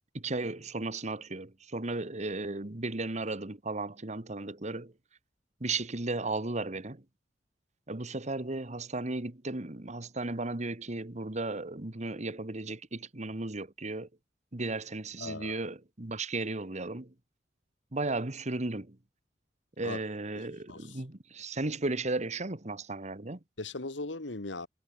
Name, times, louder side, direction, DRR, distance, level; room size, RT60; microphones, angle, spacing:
voice 1, 0.1-4.9 5.6-7.0 7.9-14.1 14.5-17.1 17.9-19.0 19.8-23.4, right 2 dB, 40° right, 1.6 m, -35 dB
voice 2, 15.2-15.7 19.8-20.0 20.4-21.0 23.6-24.7, left 2 dB, 80° left, 1.9 m, -39 dB
head